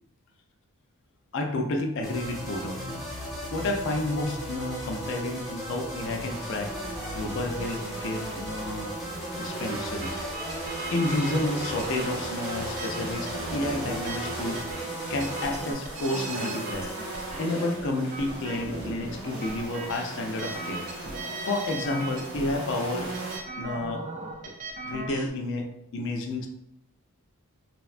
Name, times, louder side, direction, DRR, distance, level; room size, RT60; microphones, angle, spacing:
voice 1, 1.3-3.0 3.5-6.7 7.1-8.9 9.3-10.1 10.9-16.9 17.4-20.8 21.5-23.1 23.6-24.0 24.8-26.5, left 2 dB, 55° left, 3 dB, 0.4 m, -30 dB
sound 1, 2.0-15.7, right 1 dB, ahead, 0.9 m, -37 dB
sound 2, 6.0-23.4, right 2 dB, 70° right, 0.8 m, -38 dB
sound 3, 10.0-25.3, right 2 dB, 35° right, 0.3 m, -39 dB
3.3 x 2.1 x 2.4 m, 0.80 s
head